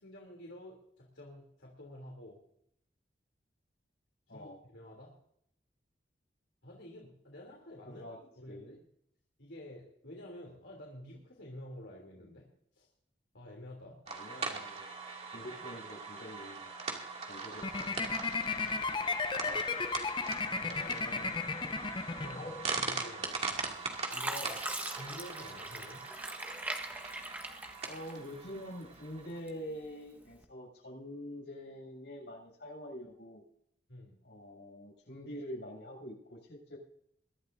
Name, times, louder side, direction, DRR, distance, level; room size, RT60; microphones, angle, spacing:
voice 1, 0.0-2.4 4.3-5.1 6.6-8.8 9.4-12.4 12.7-12.9 13.3-14.0 15.3-15.6 17.5-18.0 20.5-21.4 22.2-23.5 24.1-24.6 24.9-26.0 33.9-34.2, left 1 dB, 85° left, -1 dB, 3.3 m, -50 dB
voice 2, 4.3-4.6 7.8-8.2 8.5-8.7 14.1-14.8 15.3-16.7 17.2-17.8 19.4-19.6 27.8-33.4 34.2-36.8, equal, 65° left, 0 dB, 7.4 m, -45 dB
sound 1, 14.1-29.4, right 4 dB, 35° right, 2.5 m, -41 dB
sound 2, 17.6-22.8, left 4 dB, 25° left, 0.6 m, -35 dB
Fill (with liquid), 23.3-23.7 24.1-28.5 28.9-29.7 30.3-30.4, right 1 dB, 10° right, 1.4 m, -41 dB
23.0 x 12.5 x 2.7 m, 0.72 s
head